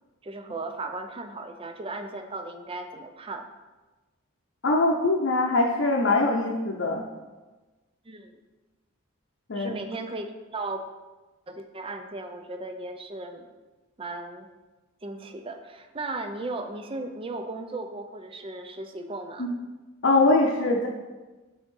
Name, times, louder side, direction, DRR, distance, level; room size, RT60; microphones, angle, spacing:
voice 1, 0.2-3.5 8.0-8.3 9.5-10.8 11.5-13.5 14.0-14.5 15.0-19.5, right 2 dB, 25° right, 7 dB, 0.5 m, -36 dB
voice 2, 4.6-7.0 9.5-9.8 19.4-19.5 20.0-20.9, left 2 dB, 60° left, -2 dB, 0.7 m, -22 dB
6.1 x 3.6 x 5.4 m, 1.2 s
head